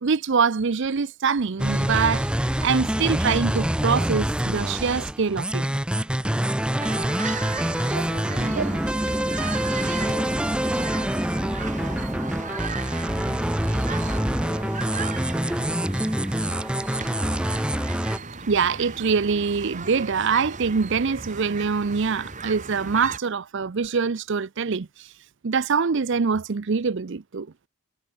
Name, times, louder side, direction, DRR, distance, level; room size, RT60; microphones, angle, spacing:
voice 1, 0.0-5.7 7.9-8.0 8.4-8.7 9.4-9.8 18.5-25.1 25.4-27.5, right 5 dB, 55° right, 0.5 m, -24 dB
sound 1, 1.6-18.2, equal, 5° right, 0.7 m, -25 dB
sound 2, 6.8-23.2, right 4 dB, 35° right, 2.6 m, -36 dB
voice 2, 7.4-8.7 9.8-10.2 10.5-12.7 13.7-15.9, left 2 dB, 30° left, 4.2 m, -50 dB
sound 3, 9.0-15.5, left 3 dB, 45° left, 6.2 m, -47 dB
head